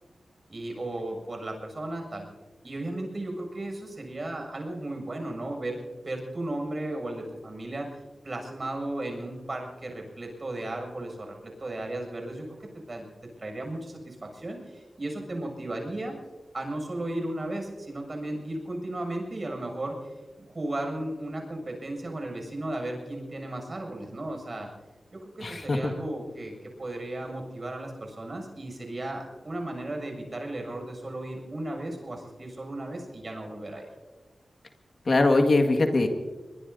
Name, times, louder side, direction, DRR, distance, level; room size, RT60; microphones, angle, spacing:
voice 1, 0.5-2.3 2.6-7.9 8.2-12.6 12.9-13.1 13.4-16.1 16.5-20.0 20.4-24.7 25.1-26.5 26.8-33.9, right 1 dB, 45° right, 2 dB, 7.1 m, -35 dB
voice 2, 25.4-25.9 35.1-36.1, left 2 dB, 55° left, 5 dB, 1.9 m, -22 dB
23.0 x 22.0 x 2.8 m, 1.2 s
cardioid pair, 50°, 0 cm